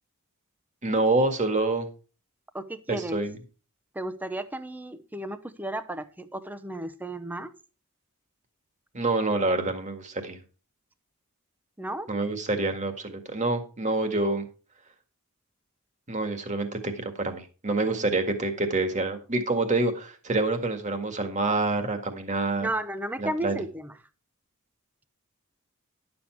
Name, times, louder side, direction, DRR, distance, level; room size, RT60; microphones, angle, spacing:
voice 1, 0.8-1.9 2.9-3.4 8.9-10.4 12.1-14.4 16.1-22.7 23.2-23.6, right 2 dB, 35° right, 7 dB, 1.8 m, -27 dB
voice 2, 2.5-3.2 3.9-7.5 11.8-12.1 22.6-24.0, right 1 dB, 10° right, 11 dB, 0.7 m, -33 dB
11.0 x 7.1 x 4.6 m, 0.35 s
head